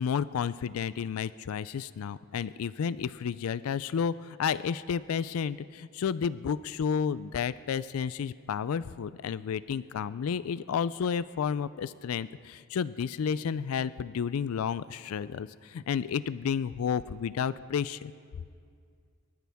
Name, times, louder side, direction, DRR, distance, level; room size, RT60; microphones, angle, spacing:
voice 1, 0.0-18.1, left 7 dB, 70° left, 17 dB, 0.4 m, -31 dB
24.0 x 13.5 x 3.6 m, 2.2 s
head